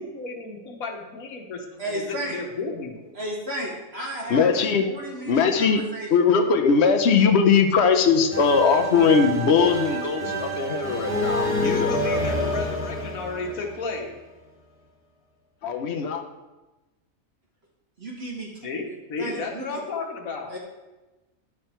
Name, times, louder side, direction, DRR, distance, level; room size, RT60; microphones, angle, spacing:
voice 1, 0.0-3.1 11.4-14.1 15.8-15.9 18.6-20.6, left 3 dB, 85° left, 3 dB, 1.6 m, -33 dB
voice 2, 1.8-2.4 3.1-6.1 18.0-18.7 19.2-19.8 20.5-20.6, right 1 dB, 50° right, -3 dB, 1.7 m, -33 dB
voice 3, 4.3-4.9 5.3-5.8 6.1-12.2 15.6-16.2, left 5 dB, 55° left, 6 dB, 1.1 m, -20 dB
sound 1, 8.3-14.1, equal, 10° right, 2.1 m, -28 dB
11.0 x 6.1 x 4.5 m, 1.1 s
omnidirectional pair, 1.4 m